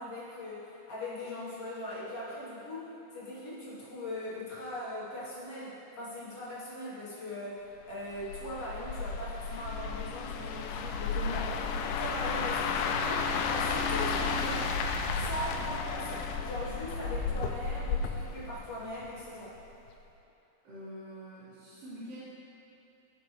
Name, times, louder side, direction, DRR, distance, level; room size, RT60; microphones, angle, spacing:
voice 1, 0.0-7.6 7.9-11.6 12.0-14.7 15.1-19.6, left 1 dB, 55° left, -8 dB, 1.8 m, -40 dB
sound 1, 8.1-19.3 19.6-19.9, left 5 dB, 85° left, 2.5 m, -33 dB
voice 2, 20.6-22.2, equal, 65° right, -12 dB, 3.2 m, -46 dB
16.0 x 5.8 x 3.2 m, 2.9 s
omnidirectional pair, 4.4 m